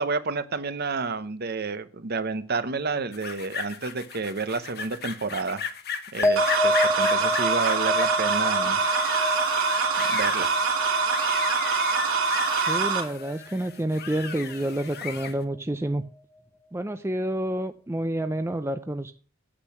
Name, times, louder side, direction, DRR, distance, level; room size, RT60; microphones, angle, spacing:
voice 1, 0.0-5.6 6.1-8.8 10.0-10.5, right 4 dB, 50° right, 13 dB, 0.9 m, -30 dB
sound 1, 3.1-15.4, left 7 dB, 50° left, 1.2 m, -36 dB
sound 2, 6.2-12.9 13.2-13.8, left 1 dB, 10° left, 0.8 m, -29 dB
sound 3, 6.4-13.0, right 4 dB, 70° right, 2.7 m, -24 dB
voice 2, 12.7-16.0 16.7-19.1, right 1 dB, 10° right, 9 dB, 0.5 m, -29 dB
8.8 x 8.4 x 5.9 m, 0.39 s
head